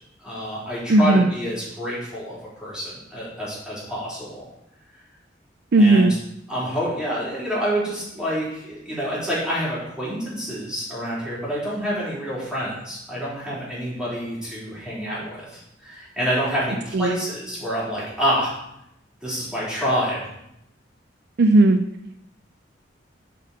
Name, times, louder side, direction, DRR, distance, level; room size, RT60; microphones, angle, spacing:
voice 1, 0.2-4.5 5.8-6.1 6.5-18.5 19.2-20.2, equal, 5° right, -9 dB, 3.7 m, -27 dB
voice 2, 0.9-1.3 5.7-6.1 16.9-17.1 21.4-21.8, right 2 dB, 60° right, 8 dB, 0.5 m, -15 dB
7.4 x 5.5 x 5.5 m, 0.80 s
head